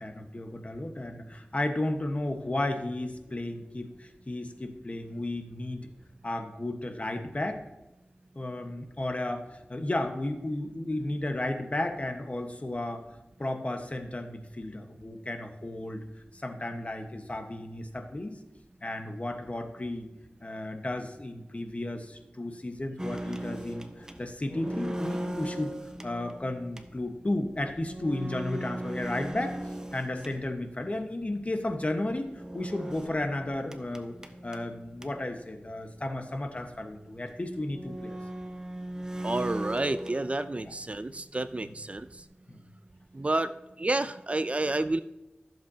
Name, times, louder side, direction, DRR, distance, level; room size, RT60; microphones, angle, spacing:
voice 1, 0.0-5.9 6.2-7.6 8.3-13.0 13.4-16.0 16.3-18.3 18.8-20.1 20.4-25.7 26.0-34.2 34.4-38.2 40.6-40.7 41.6-41.7 42.5-42.6, left 1 dB, 40° left, 5 dB, 1.2 m, -33 dB
sound 1, 23.0-30.8 32.3-35.4 35.7-35.8 36.1-36.2 36.9-37.0 37.6-40.8 41.1-42.2, right 1 dB, 20° right, 0.9 m, -38 dB
voice 2, 39.2-42.2 43.1-45.0, right 2 dB, 35° right, 12 dB, 0.4 m, -30 dB
14.5 x 7.5 x 2.8 m, 1.0 s
wide cardioid pair, 55°, 4 cm